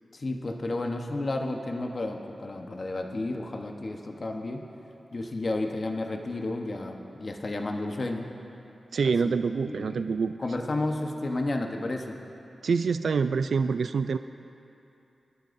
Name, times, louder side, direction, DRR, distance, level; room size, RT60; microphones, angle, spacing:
voice 1, 0.1-4.7 5.1-8.3 9.0-9.3 9.7-12.2, left 2 dB, 50° left, 3 dB, 1.0 m, -32 dB
voice 2, 8.9-10.3 12.6-14.2, right 5 dB, 80° right, 10 dB, 0.3 m, -26 dB
27.0 x 11.5 x 2.7 m, 2.8 s
cardioid pair, 50°, 0 cm